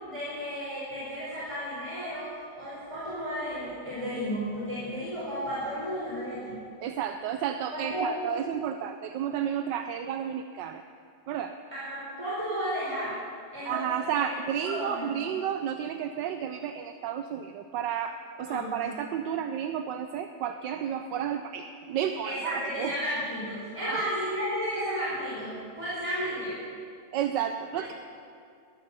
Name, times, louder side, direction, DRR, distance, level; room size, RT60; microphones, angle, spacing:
voice 1, 0.0-6.6 7.7-8.2 11.7-13.2 13.5-13.9 14.6-15.0 18.4-18.9 22.2-26.5, equal, 15° right, -9 dB, 4.9 m, -33 dB
voice 2, 6.8-10.8 11.3-11.6 13.6-22.9 23.9-24.0 27.1-27.9, right 9 dB, 80° right, 8 dB, 1.3 m, -32 dB
19.0 x 12.5 x 5.5 m, 2.3 s
omnidirectional pair, 1.9 m